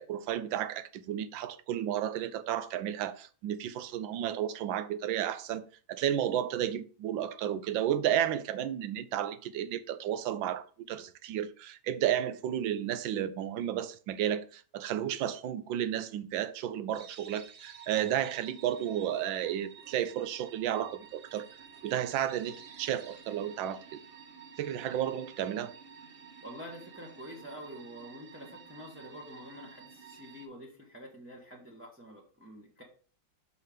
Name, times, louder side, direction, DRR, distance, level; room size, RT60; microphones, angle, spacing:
voice 1, 0.0-5.6 5.9-21.5 21.8-24.0 24.6-25.7, right 10 dB, 80° right, 1.4 m, -32 dB
sound 1, 16.9-30.5, right 7 dB, 65° right, 0.5 m, -52 dB
voice 2, 26.4-32.8, equal, 10° right, 1.0 m, -47 dB
6.1 x 5.4 x 5.0 m
omnidirectional pair, 2.1 m